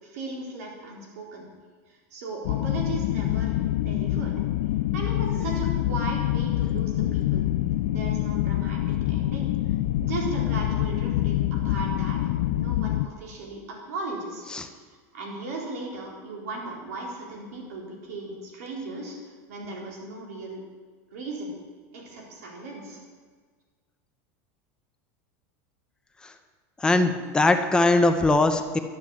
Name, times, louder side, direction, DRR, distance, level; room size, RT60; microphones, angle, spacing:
voice 1, 0.0-1.5 2.1-4.3 4.9-7.5 7.9-9.5 10.0-14.7 15.1-19.2 19.5-20.6 21.1-21.6 21.9-23.0, right 3 dB, 85° right, -1 dB, 4.1 m, -36 dB
sound 1, 2.4-13.1, left 14 dB, 75° left, 0.4 m, -26 dB
voice 2, 26.8-28.8, left 2 dB, 10° left, 7 dB, 0.7 m, -21 dB
11.5 x 7.8 x 8.4 m, 1.5 s
supercardioid pair, 150°, 8 cm